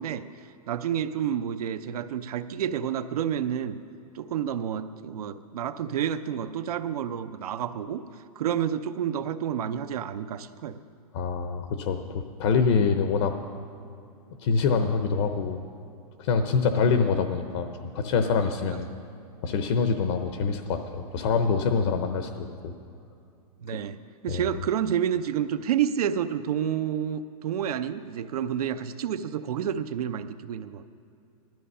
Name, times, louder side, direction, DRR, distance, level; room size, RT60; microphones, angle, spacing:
voice 1, 0.0-3.8 4.1-8.0 8.4-10.8 23.6-24.0 24.2-30.8, right 9 dB, 70° right, 10 dB, 0.7 m, -29 dB
voice 2, 11.1-13.4 14.4-15.6 16.2-18.9 19.4-22.7 23.7-23.8 24.3-24.5, left 5 dB, 45° left, 7 dB, 0.8 m, -25 dB
16.0 x 12.5 x 5.5 m, 2.6 s
hypercardioid pair, 155°, 20 cm